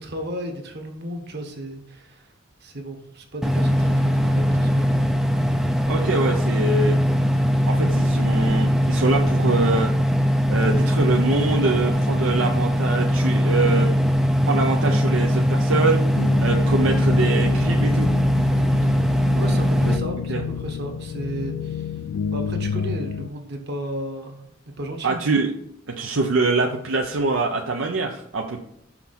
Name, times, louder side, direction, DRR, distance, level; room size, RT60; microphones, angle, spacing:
voice 1, 0.0-2.3 2.6-5.0 19.3-22.0 22.3-24.5 24.8-25.2, right 1 dB, 55° right, 4 dB, 1.4 m, -34 dB
sound 1, 3.4-20.0, equal, ahead, 0.4 m, -20 dB
voice 2, 5.9-7.0 7.6-9.9 10.5-13.9 14.5-16.0 16.4-18.1 20.3-20.4 25.0-25.5 25.9-28.6, right 3 dB, 75° right, 2 dB, 0.7 m, -24 dB
sound 2, 16.1-23.3, left 6 dB, 85° left, 0.4 m, -29 dB
5.9 x 5.7 x 4.3 m, 0.75 s
head